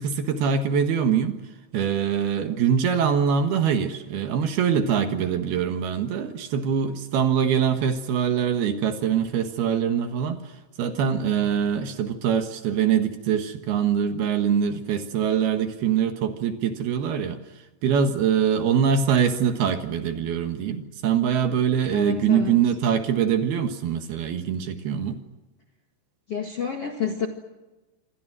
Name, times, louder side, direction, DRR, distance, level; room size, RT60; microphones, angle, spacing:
voice 1, 0.0-1.4 1.7-10.5 10.8-17.4 17.8-25.2, right 7 dB, 65° right, 7 dB, 3.1 m, -23 dB
voice 2, 21.9-22.6 26.3-27.3, left 7 dB, 50° left, 3 dB, 1.9 m, -29 dB
27.5 x 25.5 x 6.2 m, 1.1 s
omnidirectional pair, 5.4 m